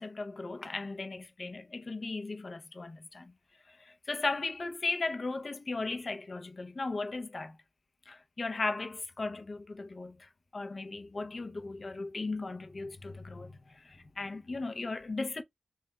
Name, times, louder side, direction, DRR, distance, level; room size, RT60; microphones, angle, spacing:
voice 1, 0.0-3.3 3.7-7.6 8.1-15.4, left 3 dB, 40° left, 0.6 m, -37 dB
3.4 x 2.4 x 3.9 m
wide cardioid pair, 120°, 0 cm